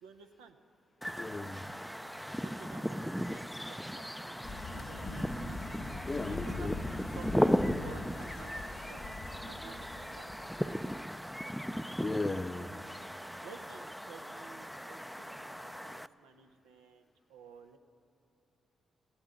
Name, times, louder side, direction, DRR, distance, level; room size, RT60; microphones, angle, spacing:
voice 1, 0.0-0.6 2.4-5.3 6.1-6.8 7.1-10.7 13.4-17.8, right 5 dB, 90° right, 5 dB, 0.7 m, -53 dB
sound 1, 1.0-16.1, equal, ahead, 0.4 m, -37 dB
voice 2, 1.2-1.7 6.0-6.7 12.0-12.7, left 2 dB, 30° left, 10 dB, 0.7 m, -36 dB
sound 2, 4.4-11.0, left 3 dB, 55° left, 0.9 m, -43 dB
16.0 x 8.8 x 7.7 m, 2.5 s
hypercardioid pair, 45°, 0 cm